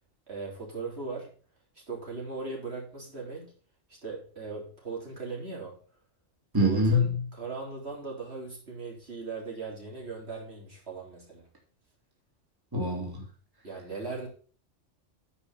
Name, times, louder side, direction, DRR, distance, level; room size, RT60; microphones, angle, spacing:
voice 1, 0.3-1.3 1.9-3.5 3.9-5.8 6.6-11.5 13.6-14.3, right 4 dB, 60° right, -2 dB, 3.6 m, -38 dB
voice 2, 6.5-7.0 12.7-13.2, left 1 dB, 20° right, -1 dB, 2.3 m, -24 dB
9.7 x 5.6 x 5.7 m, 0.41 s
omnidirectional pair, 1.2 m